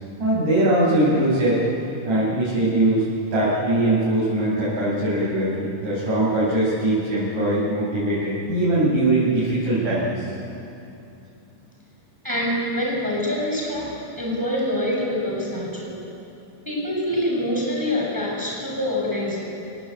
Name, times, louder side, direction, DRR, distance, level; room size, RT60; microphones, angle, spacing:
voice 1, 0.2-1.6 2.1-3.0 3.3-10.3, right 1 dB, 85° right, -9 dB, 7.2 m, -21 dB
voice 2, 12.2-16.0 16.6-19.4, left 1 dB, 5° right, -3 dB, 5.8 m, -25 dB
28.0 x 18.5 x 8.6 m, 2.8 s
omnidirectional pair, 3.5 m